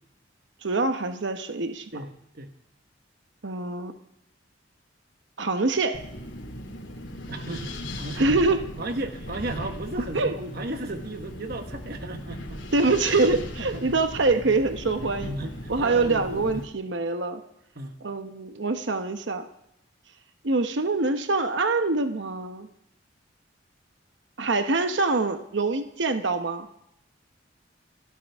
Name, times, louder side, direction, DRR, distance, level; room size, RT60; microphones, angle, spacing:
voice 1, 0.6-1.9 3.4-3.9 5.4-6.1 8.2-8.7 10.1-10.3 12.7-15.4 15.7-17.4 18.0-19.5 20.4-22.7 24.4-26.7, right 3 dB, 70° right, 7 dB, 0.9 m, -25 dB
voice 2, 1.9-2.5 7.3-8.3 8.8-12.6 13.6-14.0 14.5-14.6 15.2-16.6 17.8-17.9, right 1 dB, 55° right, 6 dB, 1.3 m, -35 dB
Wind, 5.9-16.6, left 1 dB, 80° left, 2.9 m, -38 dB
28.0 x 12.5 x 3.5 m, 0.82 s
head